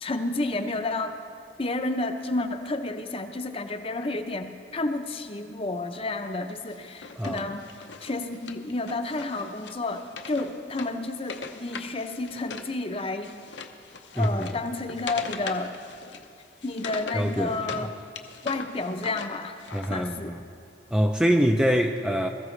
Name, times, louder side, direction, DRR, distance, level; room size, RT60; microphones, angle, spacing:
voice 1, 0.0-1.1 1.6-7.7 8.0-13.4 14.1-15.8 16.6-17.9 18.4-19.6 19.9-20.3, left 2 dB, 30° left, 7 dB, 0.7 m, -31 dB
Wood, 6.7-12.7 13.0-17.9 18.2-19.9, left 5 dB, 70° left, 0.8 m, -41 dB
voice 2, 7.2-7.5 14.2-14.5 17.1-17.9 19.7-20.4 20.9-22.3, equal, 5° right, 3 dB, 0.4 m, -24 dB
21.0 x 14.0 x 3.2 m, 2.4 s
head